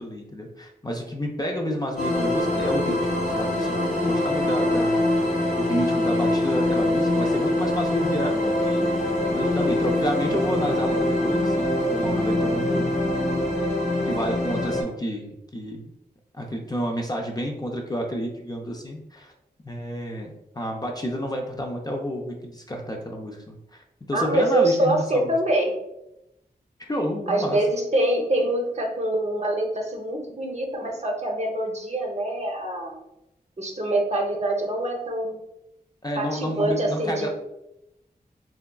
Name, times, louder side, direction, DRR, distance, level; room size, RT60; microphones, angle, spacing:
voice 1, 0.0-3.8 4.0-5.1 5.6-12.9 14.1-15.9 16.3-19.3 19.6-25.3 26.8-27.6 36.0-37.3, equal, 25° left, 1 dB, 0.5 m, -30 dB
sound 1, 2.0-14.8, left 1 dB, 50° left, 0.8 m, -24 dB
voice 2, 24.1-25.7 27.3-33.0 33.6-35.4 36.2-37.3, right 1 dB, 40° right, 1 dB, 0.7 m, -25 dB
3.4 x 2.3 x 2.3 m, 0.87 s
cardioid pair, 40°, 17 cm